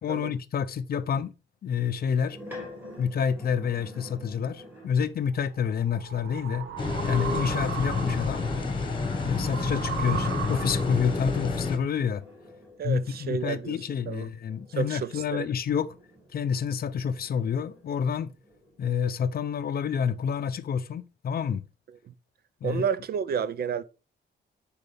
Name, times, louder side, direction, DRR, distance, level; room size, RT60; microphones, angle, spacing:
voice 1, 0.0-1.3 1.6-2.4 3.0-6.7 7.0-8.5 9.2-12.2 12.8-16.0 16.3-18.3 18.8-21.6 22.6-22.8, left 7 dB, 50° left, 0.6 m, -28 dB
sound 1, 1.9-5.2 7.1-9.5 11.4-16.7 17.2-18.9, left 1 dB, 10° right, 2.9 m, -48 dB
sound 2, 5.5-11.2, right 8 dB, 80° right, 0.9 m, -37 dB
sound 3, 6.8-11.8, left 4 dB, 25° left, 1.4 m, -29 dB
voice 2, 12.8-13.8 14.1-14.3 14.8-15.5 22.1-22.2 22.6-23.8, right 7 dB, 50° right, 0.5 m, -30 dB
11.0 x 4.8 x 3.5 m
wide cardioid pair, 180°, 20 cm